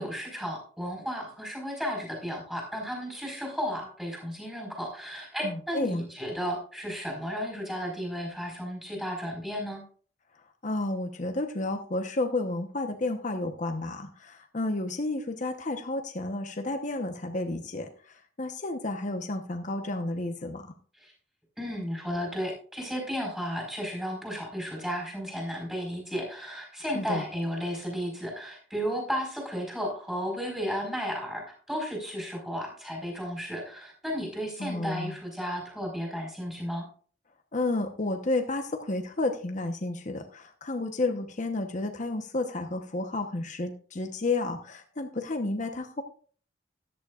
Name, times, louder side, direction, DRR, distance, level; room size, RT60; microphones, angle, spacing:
voice 1, 0.0-9.8 21.0-21.1 21.6-36.9, equal, 5° right, 0 dB, 4.7 m, -34 dB
voice 2, 5.4-6.1 10.6-20.7 26.9-27.2 34.6-35.1 37.5-46.0, left 2 dB, 45° left, 5 dB, 1.0 m, -31 dB
13.5 x 11.0 x 2.5 m, 0.44 s
head